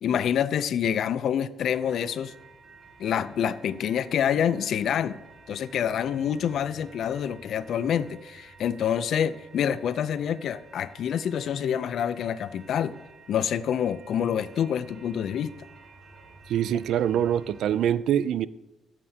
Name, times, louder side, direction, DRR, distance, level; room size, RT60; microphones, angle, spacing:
voice 1, 0.0-2.3 3.0-5.2 5.5-12.9 13.3-15.5, left 9 dB, 70° left, 0.4 m, -27 dB
sound 1, 1.6-17.9, right 4 dB, 50° right, 2.0 m, -52 dB
voice 2, 16.5-18.5, right 10 dB, 75° right, 0.3 m, -24 dB
16.0 x 7.4 x 2.8 m
cardioid pair, 90°, 0 cm